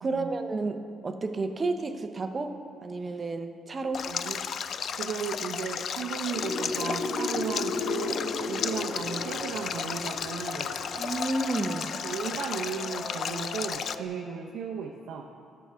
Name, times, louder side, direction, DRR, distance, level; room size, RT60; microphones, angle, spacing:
voice 1, 0.0-4.1 11.0-11.9, right 3 dB, 25° right, 7 dB, 0.6 m, -31 dB
Stream, 3.9-14.0, left 7 dB, 50° left, 0.3 m, -34 dB
voice 2, 4.0-4.4 4.9-8.2 8.5-10.7 12.0-15.3, right 6 dB, 75° right, 0 dB, 0.7 m, -35 dB
sound 1, 6.3-14.0, left 3 dB, 90° left, 2.0 m, -36 dB
16.5 x 6.2 x 3.5 m, 2.3 s
cardioid pair, 140°, 0 cm